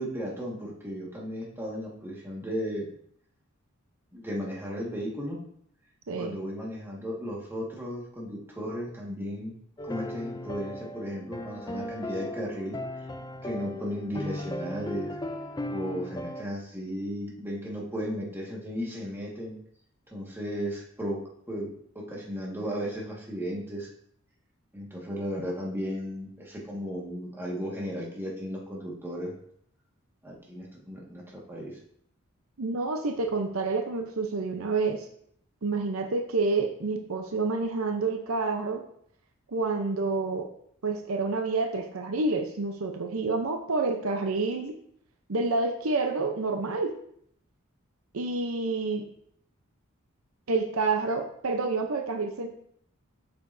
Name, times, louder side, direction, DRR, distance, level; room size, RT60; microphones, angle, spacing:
voice 1, 0.0-2.9 4.1-5.4 6.1-9.5 9.8-12.8 13.4-15.2 15.7-19.5 20.1-21.2 21.5-23.9 24.7-29.3 30.2-31.8, equal, 10° right, -3 dB, 1.7 m, -35 dB
sound 1, 9.8-16.4, left 1 dB, 20° left, 0.4 m, -37 dB
voice 2, 32.6-35.1 35.6-38.8 39.5-40.5 40.8-44.7 45.3-46.9 48.1-49.1 50.5-52.5, right 3 dB, 70° right, 5 dB, 0.7 m, -28 dB
7.8 x 6.8 x 2.7 m, 0.67 s
head